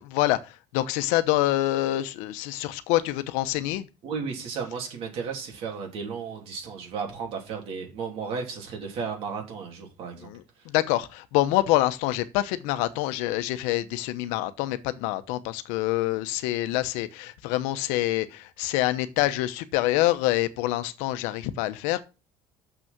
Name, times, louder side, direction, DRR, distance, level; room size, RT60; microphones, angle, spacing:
voice 1, 0.0-3.9 10.2-22.0, left 16 dB, 85° left, 0.9 m, -26 dB
voice 2, 4.0-10.3 10.6-10.7, right 5 dB, 50° right, 3.0 m, -34 dB
6.9 x 6.4 x 5.9 m
cardioid pair, 160°, 12 cm